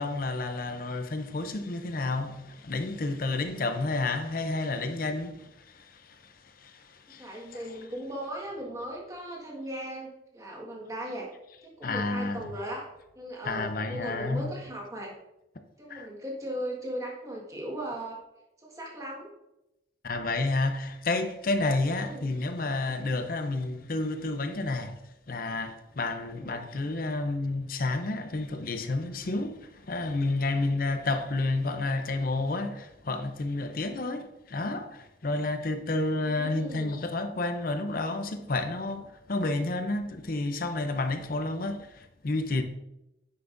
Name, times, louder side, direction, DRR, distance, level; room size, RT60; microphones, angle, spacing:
voice 1, 0.0-6.3 6.6-7.6 11.8-12.6 13.4-14.5 15.9-16.1 20.0-25.0 25.3-42.6, left 2 dB, 50° left, 0.6 m, -30 dB
voice 2, 7.2-11.3 11.6-12.9 13.1-15.1 15.8-18.2 18.6-19.3 22.0-22.3 26.3-26.6 36.2-36.9, right 1 dB, 20° right, 1.7 m, -38 dB
9.4 x 5.8 x 2.6 m
head